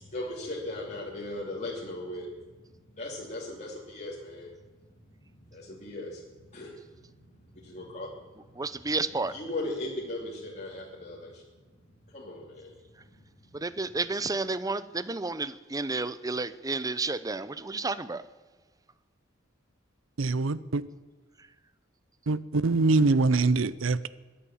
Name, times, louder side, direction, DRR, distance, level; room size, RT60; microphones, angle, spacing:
voice 1, 0.0-2.3 3.0-4.5 5.3-6.2 6.5-8.1 9.3-11.4 12.1-12.8, left 1 dB, 35° left, -4 dB, 2.8 m, -38 dB
voice 2, 8.6-9.3 13.5-18.2, right 3 dB, 20° right, 15 dB, 0.7 m, -31 dB
voice 3, 20.2-20.8 22.3-24.1, right 3 dB, 80° right, 18 dB, 0.6 m, -24 dB
22.0 x 8.7 x 7.2 m, 1.3 s
head